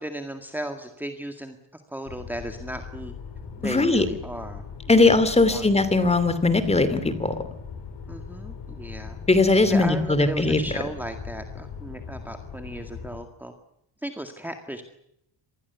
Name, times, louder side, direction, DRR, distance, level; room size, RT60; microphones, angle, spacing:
voice 1, 0.0-3.1 3.6-5.7 6.0-6.1 8.1-9.2 9.7-13.5 14.0-14.8, right 1 dB, 5° right, 6 dB, 1.9 m, -36 dB
sound 1, 2.1-13.2, left 6 dB, 60° left, 6.8 m, -40 dB
voice 2, 3.6-4.0 4.9-7.3 9.3-10.6, left 3 dB, 15° left, 13 dB, 2.7 m, -19 dB
26.5 x 20.5 x 8.2 m, 0.78 s
cardioid pair, 155°, 46 cm